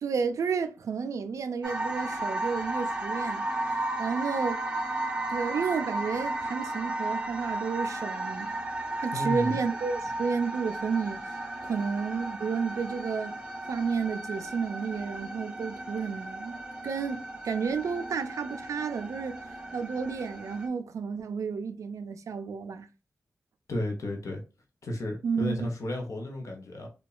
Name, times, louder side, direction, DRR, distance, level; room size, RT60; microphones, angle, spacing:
voice 1, 0.0-4.6 5.3-8.5 9.0-11.3 11.6-16.6 16.8-19.4 19.7-22.9 25.2-25.7, right 5 dB, 85° right, 0.3 m, -31 dB
sound 1, 1.6-20.7, right 2 dB, 15° right, 0.6 m, -34 dB
voice 2, 9.1-9.6 23.7-24.4 24.8-26.9, left 1 dB, 80° left, 0.7 m, -33 dB
2.9 x 2.2 x 2.3 m
wide cardioid pair, 85°, 5 cm